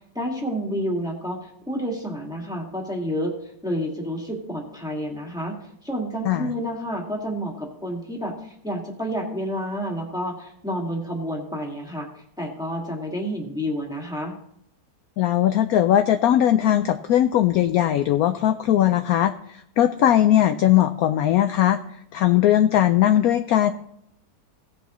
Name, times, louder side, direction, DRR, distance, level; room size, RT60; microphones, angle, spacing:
voice 1, 0.1-3.3 3.6-12.1 12.4-14.3, equal, ahead, -1 dB, 1.8 m, -29 dB
voice 2, 15.2-21.8 22.1-23.7, left 11 dB, 70° left, 9 dB, 0.9 m, -19 dB
17.0 x 9.2 x 3.1 m, 0.72 s
omnidirectional pair, 1.9 m